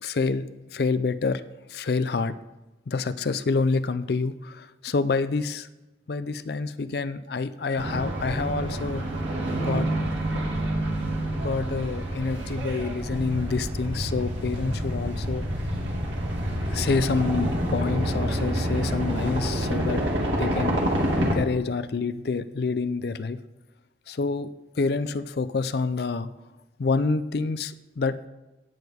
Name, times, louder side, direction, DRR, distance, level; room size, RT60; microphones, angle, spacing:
voice 1, 0.0-1.4 1.7-2.4 2.9-5.7 6.1-9.1 9.6-9.9 11.3-15.5 16.7-20.0 20.4-20.8 21.2-23.4 24.1-24.5 24.7-26.3 26.8-28.3, left 4 dB, 55° left, 14 dB, 0.4 m, -27 dB
sound 1, 7.8-21.4, right 1 dB, 85° right, 2.2 m, -28 dB
17.0 x 8.0 x 3.5 m, 1.1 s
head